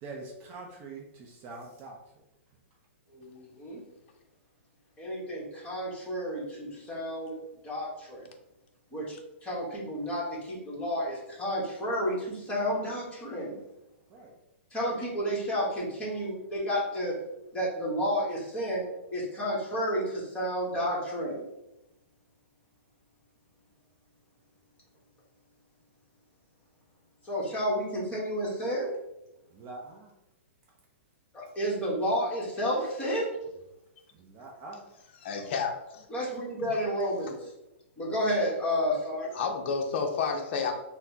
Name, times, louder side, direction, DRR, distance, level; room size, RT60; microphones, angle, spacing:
voice 1, 0.0-2.2 14.1-14.3 29.5-30.1 34.1-35.3, right 3 dB, 30° right, 1 dB, 0.5 m, -45 dB
voice 2, 3.1-3.8 5.0-7.4 7.6-8.3 8.9-9.1 9.4-13.6 14.7-17.2 17.5-21.4 27.2-28.9 31.3-33.3 36.1-37.5 38.0-39.3, equal, 15° left, -5 dB, 1.1 m, -31 dB
voice 3, 35.2-36.1 39.3-40.7, left 5 dB, 50° left, 3 dB, 0.5 m, -30 dB
4.0 x 2.0 x 2.7 m, 0.90 s
hypercardioid pair, 140°, 7 cm